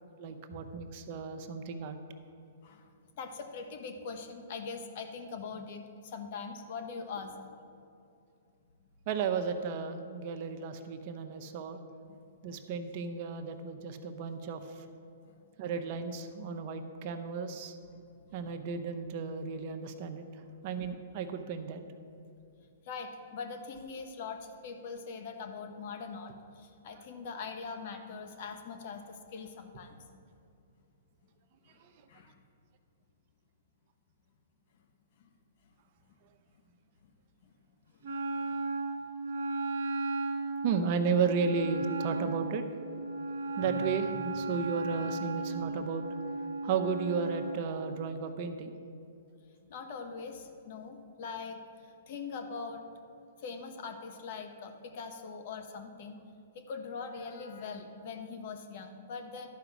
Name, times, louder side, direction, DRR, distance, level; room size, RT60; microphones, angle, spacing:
voice 1, 0.2-2.0 9.1-11.8 12.4-14.9 15.6-17.8 18.3-20.2 20.6-21.8 31.8-31.9 40.6-42.6 43.6-46.0 46.6-48.7, right 5 dB, 45° right, 7 dB, 0.8 m, -34 dB
voice 2, 3.2-7.4 12.1-12.2 12.5-12.6 15.2-15.3 17.9-18.0 18.4-18.5 22.9-30.0 31.7-31.8 32.1-32.4 35.2-35.3 37.0-37.1 37.4-37.5 38.3-38.5 49.6-52.8 53.4-56.2 56.5-59.5, left 5 dB, 55° left, 5 dB, 1.1 m, -42 dB
Wind instrument woodwind instrument, 38.0-47.6, right 2 dB, 70° right, 1.2 m, -35 dB
11.5 x 5.1 x 6.0 m, 2.6 s
hypercardioid pair, 135°, 0 cm